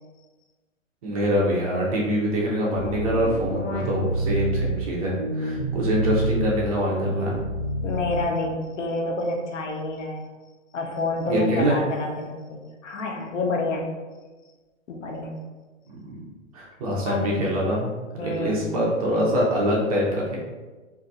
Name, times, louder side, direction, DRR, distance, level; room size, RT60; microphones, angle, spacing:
voice 1, 1.0-7.4 11.3-11.8 15.9-16.2 16.5-17.9 18.2-20.4, equal, 30° right, -3 dB, 0.6 m, -24 dB
sound 1, 2.7-4.7 5.1-6.5 6.9-8.5, right 2 dB, 15° left, 0.4 m, -28 dB
voice 2, 7.8-10.3 10.7-13.9 14.9-15.3 17.0-17.3 18.2-18.7, left 2 dB, 70° left, 2 dB, 0.8 m, -29 dB
2.6 x 2.4 x 4.0 m, 1.3 s
hypercardioid pair, 150°, 39 cm